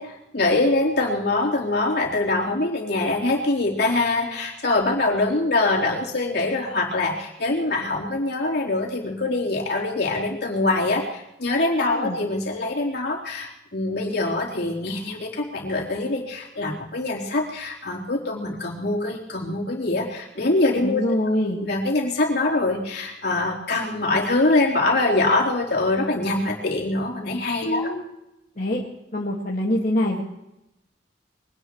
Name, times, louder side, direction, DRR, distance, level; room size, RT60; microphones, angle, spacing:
voice 1, 0.0-21.0 21.5-27.9, left 2 dB, 65° left, -2 dB, 3.9 m, -24 dB
voice 2, 11.8-12.2 20.8-21.7 27.6-28.0 28.6-28.8 29.1-30.2, left 1 dB, 50° left, -3 dB, 2.0 m, -24 dB
24.0 x 18.5 x 3.1 m, 0.87 s
head